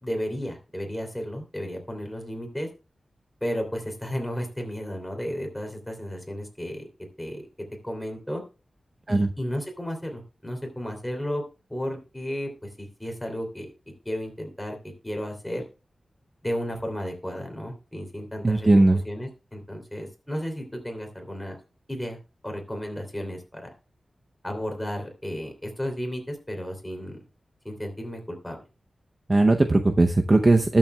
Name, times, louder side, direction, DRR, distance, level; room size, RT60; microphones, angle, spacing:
voice 1, 0.0-2.7 3.4-6.9 7.2-7.5 7.8-8.4 9.1-11.4 11.7-12.5 12.8-13.7 14.0-15.6 16.4-18.7 19.0-21.6 21.9-22.2 22.4-23.7 24.4-27.2 27.6-28.6, equal, 5° left, 3 dB, 3.0 m, -33 dB
voice 2, 18.4-19.0 29.3-30.8, right 2 dB, 25° right, 5 dB, 0.7 m, -18 dB
20.0 x 7.3 x 2.3 m, 0.30 s
wide cardioid pair, 150°, 0 cm